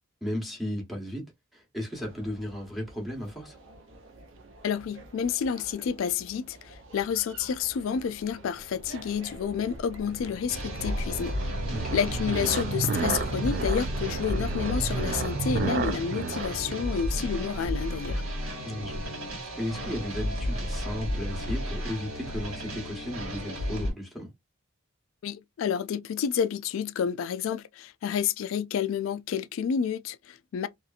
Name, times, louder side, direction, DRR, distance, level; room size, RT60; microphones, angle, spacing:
voice 1, 0.2-1.3 1.5-3.6 11.7-12.0 18.6-19.1 19.6-24.3, left 1 dB, ahead, 0.9 m, -35 dB
sound 1, 1.9-17.4, right 2 dB, 65° right, 0.7 m, -49 dB
voice 2, 4.6-11.4 11.9-18.2 25.2-30.7, left 7 dB, 70° left, 0.3 m, -30 dB
sound 2, 8.4-17.9, right 4 dB, 45° right, 0.3 m, -33 dB
sound 3, 10.5-23.9, equal, 80° right, 1.4 m, -33 dB
2.7 x 2.5 x 2.4 m
head